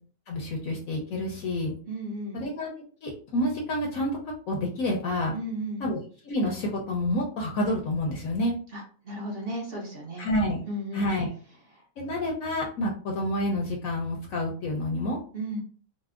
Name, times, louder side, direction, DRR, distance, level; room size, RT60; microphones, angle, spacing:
voice 1, 0.3-1.7 2.3-2.7 3.0-4.1 4.5-5.3 5.8-8.5 10.2-10.6 10.9-11.3 12.0-15.2, left 1 dB, 65° left, 0 dB, 0.9 m, -28 dB
voice 2, 1.9-2.4 5.3-5.8 8.7-10.3 10.7-11.1 15.3-15.6, right 1 dB, 50° right, -2 dB, 0.7 m, -34 dB
4.2 x 2.0 x 2.4 m, 0.42 s
omnidirectional pair, 1.8 m